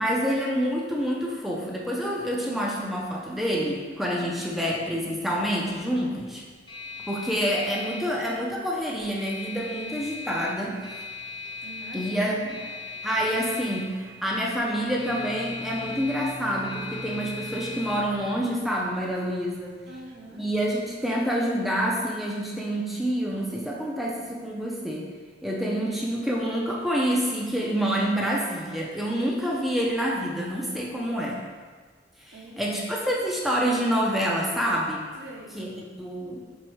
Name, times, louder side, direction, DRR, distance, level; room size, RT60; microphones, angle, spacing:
voice 1, 0.0-6.4 7.1-10.8 11.9-12.6 13.0-19.8 20.3-25.1 25.4-31.4 32.2-35.0 35.5-36.4, equal, ahead, -3 dB, 0.4 m, -27 dB
sound 1, 4.0-20.8, left 3 dB, 25° left, 0.7 m, -41 dB
voice 2, 4.2-4.7 11.6-12.6 19.9-20.5 32.3-32.6 35.2-35.6, right 1 dB, 80° right, -1 dB, 0.6 m, -44 dB
Bowed string instrument, 14.7-19.2, equal, 80° left, 1.0 m, -43 dB
4.6 x 3.0 x 3.0 m, 1.5 s
head